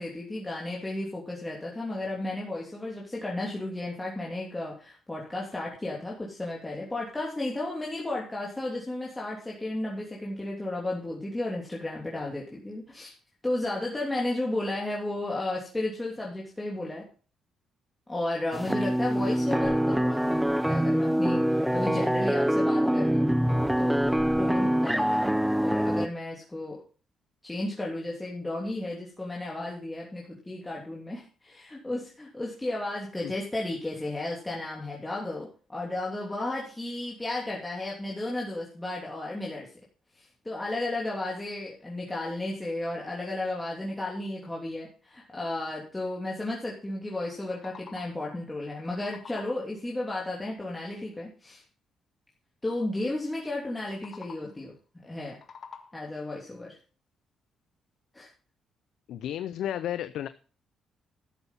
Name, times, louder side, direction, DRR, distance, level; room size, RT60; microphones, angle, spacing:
voice 1, 0.0-13.1 13.4-17.0 18.1-23.3 23.8-26.8 27.4-39.7 40.2-51.6 52.6-54.7 55.0-55.4 55.9-56.8 58.1-58.3, left 2 dB, 15° left, -3 dB, 3.0 m, -33 dB
sound 1, 18.5-26.1, equal, 5° right, 0.5 m, -25 dB
sound 2, 47.4-48.3 48.7-49.8 53.8-54.7 55.1-56.2, left 6 dB, 50° left, 1.7 m, -49 dB
voice 2, 59.1-60.3, left 11 dB, 80° left, 14 dB, 0.5 m, -32 dB
12.5 x 7.0 x 5.6 m, 0.39 s
cardioid pair, 90°, 0 cm